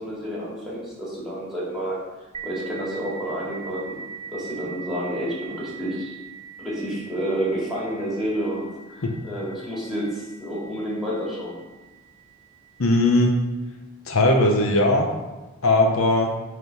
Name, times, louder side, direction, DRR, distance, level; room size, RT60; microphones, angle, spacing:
voice 1, 0.0-2.0 2.4-4.0 4.3-6.2 6.6-11.6, right 1 dB, ahead, -7 dB, 2.3 m, -29 dB
sound 1, 2.3-11.6, right 5 dB, 25° right, 0.4 m, -41 dB
voice 2, 12.8-13.3 14.1-15.1 15.6-16.3, left 2 dB, 75° left, 3 dB, 0.8 m, -19 dB
5.9 x 3.7 x 5.8 m, 1.2 s
head